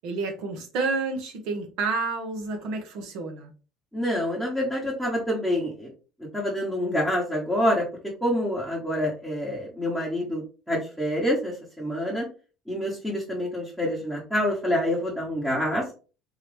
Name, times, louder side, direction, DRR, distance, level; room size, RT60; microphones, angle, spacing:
voice 1, 0.0-3.5, right 3 dB, 70° right, 3 dB, 1.1 m, -30 dB
voice 2, 3.9-5.9 6.3-7.8 8.2-12.2 12.7-15.9, equal, ahead, -4 dB, 1.2 m, -27 dB
3.8 x 2.9 x 3.4 m, 0.35 s
cardioid pair, 140°, 0 cm